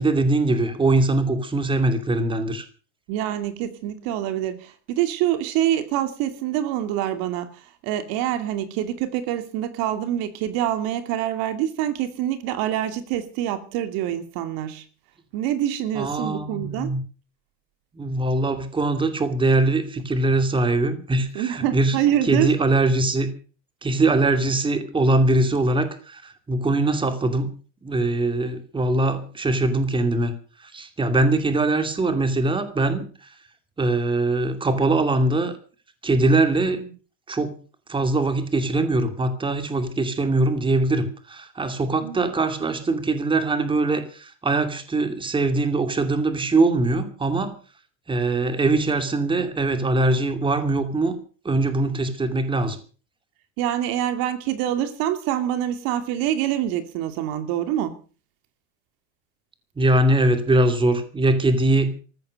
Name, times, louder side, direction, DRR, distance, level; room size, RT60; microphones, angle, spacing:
voice 1, 0.0-2.6 15.9-17.0 17.9-23.3 23.8-27.5 27.8-30.3 30.6-33.1 33.8-35.5 36.0-36.9 37.3-37.6 37.9-47.6 48.1-51.2 51.4-52.8 59.8-61.9, right 2 dB, 15° right, 2.6 m, -22 dB
voice 2, 3.1-7.5 7.8-14.8 15.3-16.9 21.3-22.5 42.0-42.2 53.6-58.0, right 11 dB, 60° right, 2.7 m, -25 dB
15.0 x 13.5 x 6.6 m
supercardioid pair, 140°, 38 cm